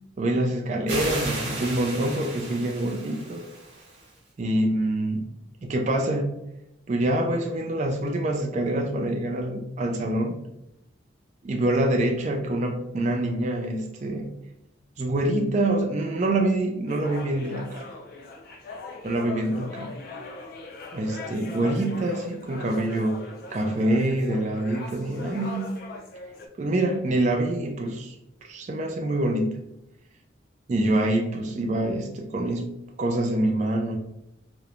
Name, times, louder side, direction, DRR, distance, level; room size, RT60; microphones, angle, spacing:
voice 1, 0.2-3.4 4.4-5.3 5.6-6.3 6.9-10.4 11.4-14.3 15.0-17.9 19.0-20.0 20.9-23.2 23.5-25.7 26.6-28.2 28.4-29.6 30.7-32.7 33.0-34.0, right 1 dB, 40° right, 2 dB, 0.3 m, -25 dB
sound 1, 0.9-4.2, right 2 dB, 65° right, 1.1 m, -34 dB
sound 2, 16.9-26.5, left 3 dB, 50° left, 0.3 m, -40 dB
3.0 x 2.0 x 2.4 m, 0.86 s
head